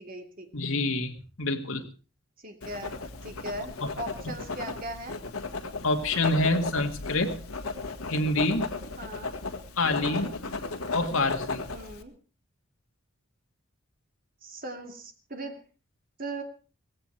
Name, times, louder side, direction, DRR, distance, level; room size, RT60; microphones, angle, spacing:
voice 1, 0.0-0.5 2.4-5.2 9.0-9.3 10.0-10.3 11.7-12.1 14.4-15.6 16.2-16.4, right 1 dB, 40° right, 5 dB, 2.6 m, -39 dB
voice 2, 0.5-1.8 3.8-3.9 5.8-7.4 8.1-8.7 9.8-10.3 10.9-11.6, left 2 dB, 75° left, 4 dB, 2.4 m, -27 dB
Writing, 2.6-12.0, left 3 dB, 90° left, 1.8 m, -35 dB
17.5 x 16.0 x 4.7 m, 0.36 s
head